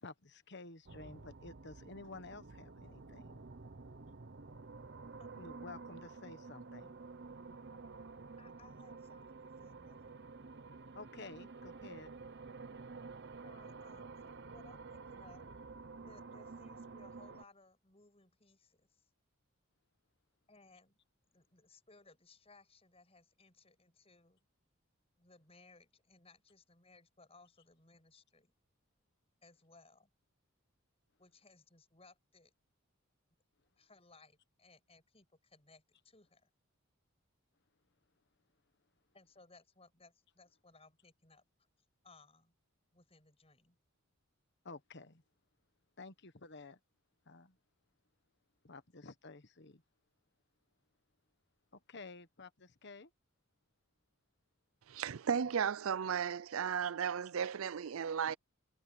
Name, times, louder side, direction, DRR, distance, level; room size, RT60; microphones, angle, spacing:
voice 1, 0.0-3.4 5.4-6.9 10.9-12.1 44.6-45.2 46.0-46.8 47.3-47.6 48.6-49.8 51.7-53.1, left 3 dB, 50° left, 1.3 m, -52 dB
sound 1, 0.9-17.4, right 4 dB, 55° right, 0.9 m, -51 dB
voice 2, 5.2-5.5 8.4-10.2 13.4-15.5 16.0-19.1 20.5-21.0 21.3-24.5 25.2-28.5 29.4-30.1 31.2-32.5 33.8-36.5 39.1-41.4 42.0-42.5 42.9-43.8, left 3 dB, 30° left, 7.4 m, -63 dB
voice 3, 54.9-58.4, right 7 dB, 70° right, 0.5 m, -35 dB
head